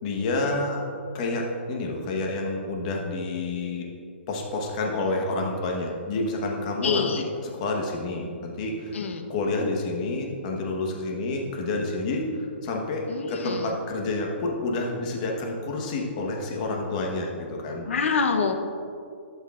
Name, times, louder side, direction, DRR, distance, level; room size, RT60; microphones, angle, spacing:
voice 1, 0.0-0.8 1.1-3.9 4.3-9.0 9.3-17.8, left 2 dB, 35° left, 0 dB, 1.2 m, -29 dB
voice 2, 6.8-7.3 8.9-9.3 13.1-13.7 17.9-18.5, left 5 dB, 75° left, 7 dB, 0.8 m, -26 dB
12.5 x 6.4 x 2.5 m, 2.4 s
hypercardioid pair, 160°, 7 cm